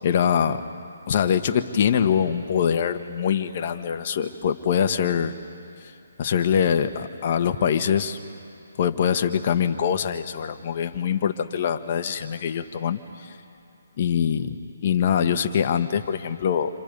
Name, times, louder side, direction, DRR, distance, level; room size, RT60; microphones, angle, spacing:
voice 1, 0.0-0.6 1.1-5.3 6.2-8.2 8.8-13.0 14.0-14.6 14.8-16.7, left 8 dB, 45° left, 8 dB, 1.3 m, -23 dB
28.5 x 26.5 x 5.4 m, 2.5 s
hypercardioid pair, 150°, 0 cm